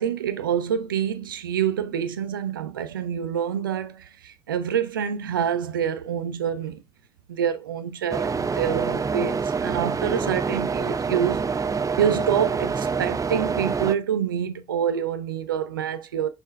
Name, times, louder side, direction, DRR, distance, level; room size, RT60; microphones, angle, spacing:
voice 1, 0.0-6.8 7.3-11.6 12.0-16.3, right 8 dB, 85° right, 0.6 m, -27 dB
sound 1, 8.1-13.9, right 5 dB, 30° right, 0.7 m, -26 dB
6.3 x 5.8 x 3.3 m
figure-of-eight pair, 45°, 11 cm